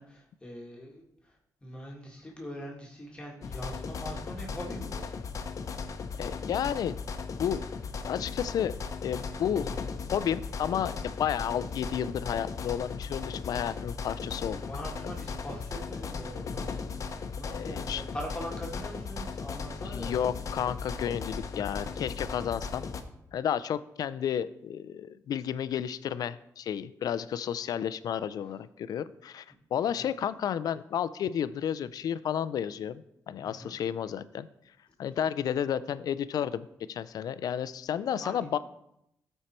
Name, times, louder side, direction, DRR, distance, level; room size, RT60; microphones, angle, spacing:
voice 1, 0.0-1.4 1.6-5.1 14.5-20.1 29.9-30.0 33.4-33.7 38.2-38.5, equal, 15° left, -2 dB, 1.8 m, -42 dB
sound 1, 3.4-23.0, left 5 dB, 55° left, 0.8 m, -37 dB
voice 2, 6.2-6.9 7.4-7.6 8.0-8.7 9.0-9.7 10.1-14.6 17.5-18.0 19.9-22.9 23.3-29.4 29.7-34.5 35.0-38.6, left 9 dB, 75° left, 15 dB, 0.4 m, -32 dB
13.5 x 4.6 x 4.3 m, 0.79 s
cardioid pair, 110°, 7 cm